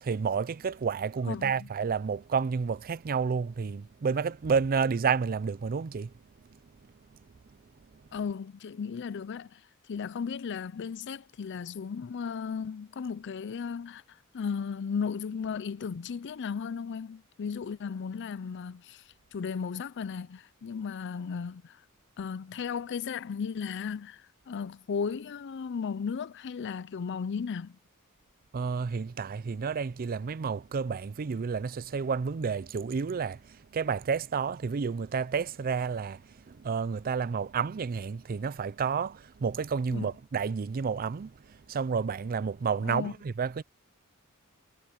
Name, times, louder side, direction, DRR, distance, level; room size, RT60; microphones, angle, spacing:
voice 1, 0.0-6.1 28.5-36.2 36.5-43.6, right 5 dB, 40° right, 0.4 m, -30 dB
voice 2, 1.3-1.7 8.1-9.6 9.9-21.8 22.2-27.8 39.9-40.1 42.8-43.1, left 6 dB, 55° left, 0.4 m, -35 dB
head